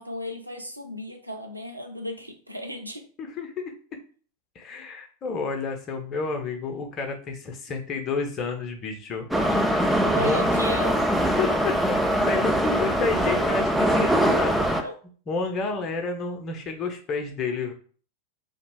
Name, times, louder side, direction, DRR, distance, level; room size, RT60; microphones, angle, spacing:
voice 1, 0.0-3.1 10.0-11.1 14.0-14.9, left 1 dB, 85° right, 4 dB, 0.5 m, -35 dB
voice 2, 3.2-3.7 4.5-9.3 9.6-9.8 10.1-10.4 11.2-14.5 15.3-17.7, left 4 dB, 30° left, 4 dB, 0.7 m, -30 dB
Subway metro underground, 9.3-14.8, equal, ahead, 0.4 m, -22 dB
3.0 x 2.3 x 3.4 m, 0.42 s
figure-of-eight pair, 90°, 0 cm